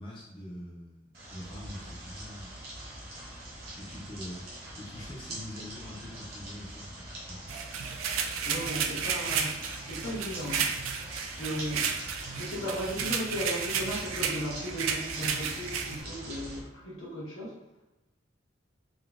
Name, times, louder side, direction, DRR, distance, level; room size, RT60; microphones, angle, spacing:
voice 1, 0.0-2.6 3.8-4.4 4.8-7.6, left 1 dB, 25° left, -5 dB, 0.5 m, -44 dB
sound 1, 1.1-16.6, right 1 dB, 50° right, 0.8 m, -43 dB
sound 2, 7.5-16.0, right 6 dB, 85° right, 0.3 m, -33 dB
voice 2, 8.4-12.0 12.3-17.6, equal, 80° left, -6 dB, 1.1 m, -36 dB
3.9 x 2.0 x 2.4 m, 1.0 s
head